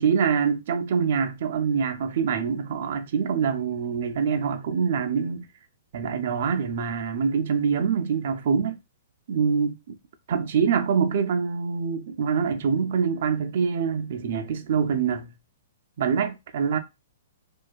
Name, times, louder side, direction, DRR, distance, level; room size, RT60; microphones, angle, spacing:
voice 1, 0.0-5.4 5.9-8.8 9.3-10.0 10.3-15.3 16.0-16.8, right 6 dB, 45° right, 0.3 m, -25 dB
2.5 x 2.2 x 2.3 m
hypercardioid pair, 170°, 0 cm